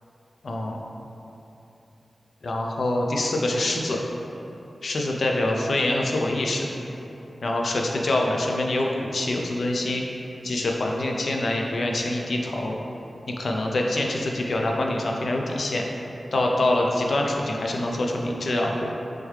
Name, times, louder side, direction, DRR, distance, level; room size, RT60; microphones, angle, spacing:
voice 1, 0.4-0.8 2.4-4.0 4.8-6.7 7.4-10.0 10.4-12.8 13.4-15.8 16.3-18.9, left 1 dB, 75° left, 0 dB, 0.4 m, -25 dB
3.4 x 3.1 x 3.2 m, 3.0 s
wide cardioid pair, 65°, 0 cm